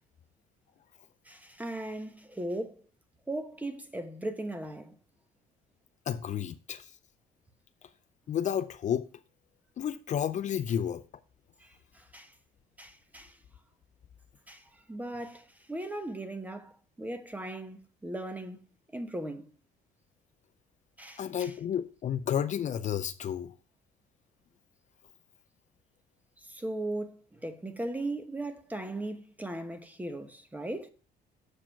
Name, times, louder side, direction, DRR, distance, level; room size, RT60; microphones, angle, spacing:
voice 1, 1.3-2.8 3.3-4.9 12.1-12.3 12.8-13.3 14.5-14.6 14.9-15.4 15.7-16.7 17.0-18.6 18.9-19.5 21.0-21.5 26.5-30.9, right 1 dB, 10° right, 1.0 m, -37 dB
voice 2, 6.1-6.9 8.3-9.0 9.8-11.0 21.2-23.5, left 9 dB, 45° left, 0.6 m, -31 dB
7.3 x 4.9 x 5.7 m
cardioid pair, 110°, 17 cm